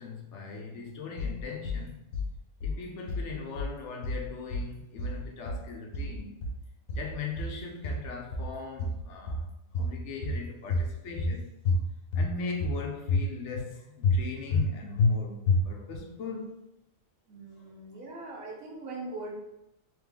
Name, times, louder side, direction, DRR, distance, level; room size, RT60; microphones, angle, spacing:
voice 1, 0.0-2.0 2.6-6.5 6.9-9.5 9.7-11.5 12.1-16.6 17.6-17.7, left 5 dB, 65° left, 0.9 m, -39 dB
sound 1, 1.2-1.8 2.1-2.8 3.1-3.8 4.0-4.7 5.0-5.7 5.9-6.6 6.9-7.6 7.8-8.5 8.8-9.5 9.7-10.4 10.7-11.4 11.7-12.3 12.6-13.3 13.5-13.7 14.0-14.7 15.0-15.1 15.5-16.0, left 2 dB, 85° left, 1.2 m, -28 dB
voice 2, 17.3-19.3, right 2 dB, 85° right, 1.3 m, -41 dB
3.4 x 3.1 x 3.5 m
omnidirectional pair, 1.4 m